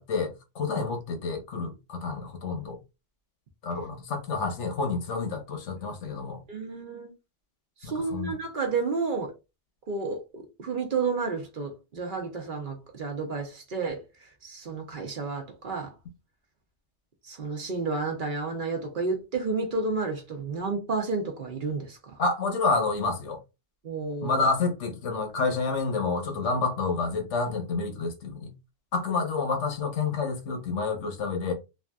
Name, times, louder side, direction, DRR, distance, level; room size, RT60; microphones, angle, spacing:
voice 1, 0.0-2.8 3.6-6.4 7.8-8.3 22.2-23.4 24.2-28.5 28.9-31.5, left 4 dB, 85° left, 1.2 m, -29 dB
voice 2, 6.5-7.1 7.8-9.3 9.9-14.0 14.4-15.9 17.2-22.1 23.8-24.4, right 4 dB, 50° right, 0.8 m, -31 dB
3.3 x 2.5 x 2.2 m
omnidirectional pair, 1.2 m